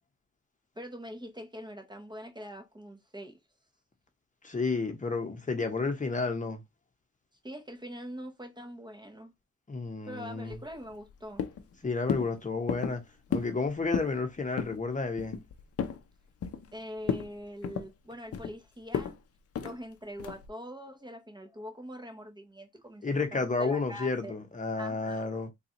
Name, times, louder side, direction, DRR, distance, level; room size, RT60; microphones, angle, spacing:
voice 1, 0.8-3.4 7.4-9.3 10.0-11.5 16.7-19.1 19.6-23.0 23.4-24.4 24.8-25.3, equal, 15° right, 0.9 m, -43 dB
voice 2, 4.4-6.6 9.7-10.6 11.8-13.0 13.3-15.4 23.0-25.5, left 3 dB, 25° left, 0.9 m, -31 dB
sound 1, 10.5-11.1 11.4-11.7 12.1-12.3 12.7-13.0 13.3-13.6 13.8-14.2 14.6-14.8 15.2-16.0 16.4-16.8 17.0-17.3 17.6-18.5 18.9-19.1 19.5-19.8 20.2-20.5, left 7 dB, 55° left, 0.6 m, -33 dB
3.8 x 2.4 x 2.9 m
cardioid pair, 90°, 29 cm